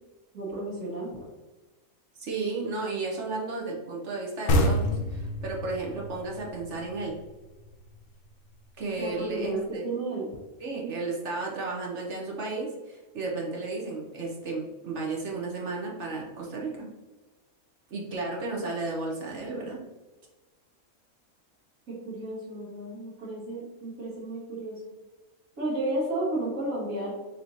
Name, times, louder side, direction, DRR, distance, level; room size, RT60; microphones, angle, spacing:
voice 1, 0.3-1.2 9.0-10.3 21.9-24.8 25.6-27.1, right 2 dB, 75° right, -9 dB, 1.9 m, -32 dB
voice 2, 2.2-7.1 8.8-9.8 10.6-16.9 17.9-19.8, right 3 dB, 60° right, -2 dB, 1.2 m, -33 dB
sound 1, 4.5-7.9, left 1 dB, 90° left, 1.2 m, -27 dB
6.0 x 3.0 x 2.7 m, 1.2 s
omnidirectional pair, 1.5 m